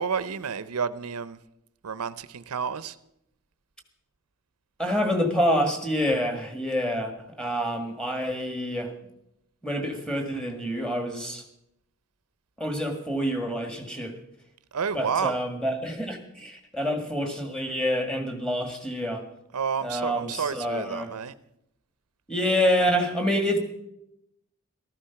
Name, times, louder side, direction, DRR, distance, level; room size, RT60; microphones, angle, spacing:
voice 1, 0.0-1.4 1.8-3.0 14.7-15.4 19.5-21.3, right 6 dB, 90° right, 16 dB, 0.7 m, -30 dB
voice 2, 4.8-7.1 7.4-8.9 9.6-11.4 12.6-14.2 14.9-19.2 19.8-21.1 22.3-23.6, equal, 5° left, 5 dB, 1.7 m, -27 dB
14.5 x 13.5 x 5.8 m, 0.82 s
head